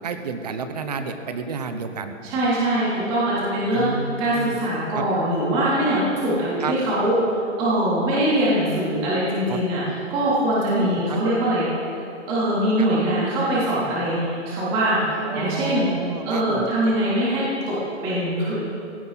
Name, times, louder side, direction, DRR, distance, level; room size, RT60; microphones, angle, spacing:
voice 1, 0.0-2.2 3.7-4.6 4.9-5.0 6.6-6.7 8.1-8.2 9.5-9.6 10.7-11.2 12.8-12.9 15.2-16.7, right 5 dB, 30° right, 8 dB, 1.1 m, -30 dB
voice 2, 2.2-7.1 7.6-11.7 12.3-15.9 16.2-17.7 18.0-18.5, right 1 dB, 15° right, -8 dB, 3.5 m, -22 dB
17.5 x 17.0 x 4.2 m, 2.6 s
hypercardioid pair, 175°, 38 cm